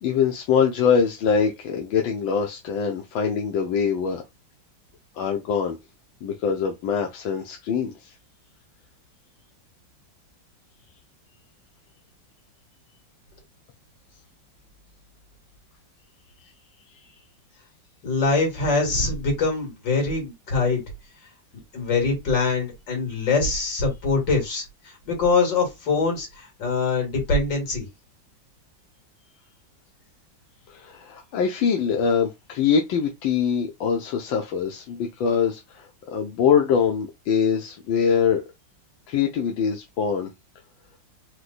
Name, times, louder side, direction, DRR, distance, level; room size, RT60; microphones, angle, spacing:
voice 1, 0.0-4.2 5.1-5.8 6.2-8.1 30.7-38.4 39.1-40.3, left 6 dB, 90° left, 1.5 m, -23 dB
voice 2, 18.0-20.8 21.7-27.9, left 3 dB, 70° left, 2.8 m, -23 dB
4.8 x 2.2 x 4.0 m
omnidirectional pair, 2.0 m